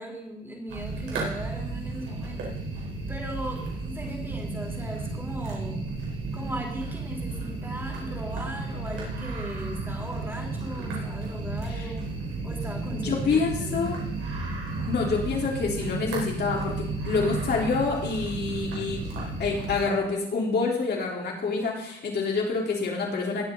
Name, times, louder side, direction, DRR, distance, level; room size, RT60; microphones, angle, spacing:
voice 1, 0.0-5.9 6.3-12.1 12.4-14.0, right 1 dB, 10° right, 0 dB, 4.0 m, -38 dB
sound 1, 0.7-19.8, right 3 dB, 85° right, 4.6 m, -33 dB
voice 2, 12.9-14.0 14.9-16.7 17.0-19.0 19.4-23.5, left 4 dB, 55° left, -1 dB, 3.9 m, -27 dB
20.0 x 7.8 x 4.0 m, 0.79 s
cardioid pair, 90°, 20 cm